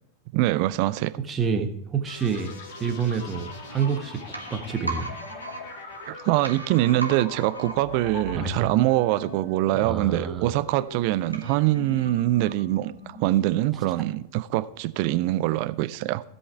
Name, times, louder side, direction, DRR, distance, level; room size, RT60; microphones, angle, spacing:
voice 1, 0.3-1.1 6.1-16.2, right 16 dB, 45° right, 0.5 m, -24 dB
voice 2, 1.2-2.5 2.8-4.2 4.5-5.2 8.3-8.7 9.7-10.5, right 6 dB, 20° right, 1.4 m, -28 dB
sound 1, 2.1-15.7, left 3 dB, 50° left, 2.0 m, -42 dB
sound 2, 3.3-13.0 13.3-13.4, right 3 dB, 85° right, 1.4 m, -40 dB
16.0 x 5.6 x 4.5 m
figure-of-eight pair, 90°, 0 cm